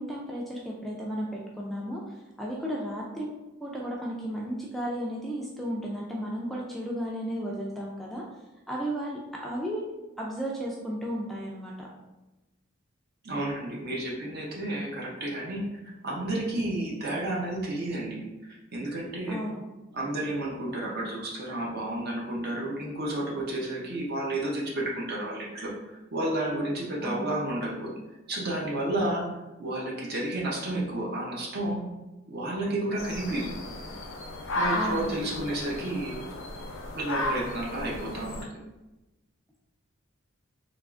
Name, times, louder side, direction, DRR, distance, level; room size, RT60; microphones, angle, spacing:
voice 1, 0.0-3.3 3.6-8.2 8.7-9.9 10.2-11.9 19.3-19.6 27.0-27.3 34.7-35.3, equal, ahead, -4 dB, 0.3 m, -34 dB
voice 2, 13.2-15.6 16.0-18.2 18.7-19.4 19.9-25.7 26.1-27.9 28.3-29.3 29.6-31.8 32.3-33.5 34.5-36.3 36.9-38.5, right 1 dB, 50° right, -3 dB, 0.7 m, -31 dB
sound 1, 33.0-38.4, left 1 dB, 75° left, 0.4 m, -34 dB
3.4 x 2.4 x 2.4 m, 1.0 s
head